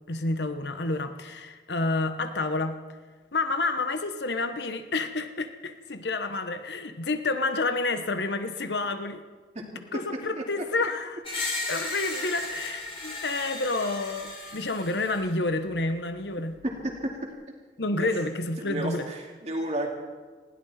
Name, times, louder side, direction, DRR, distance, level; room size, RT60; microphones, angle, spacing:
voice 1, 0.1-2.8 3.3-9.2 9.9-11.2 11.7-16.6 17.8-19.1, left 2 dB, 80° left, 8 dB, 1.1 m, -29 dB
Screech, 11.2-15.3, left 2 dB, 30° left, 3.6 m, -35 dB
voice 2, 16.6-17.1 18.0-18.1 18.6-19.9, right 1 dB, 40° right, 1 dB, 2.6 m, -32 dB
20.0 x 16.5 x 4.3 m, 1.5 s
head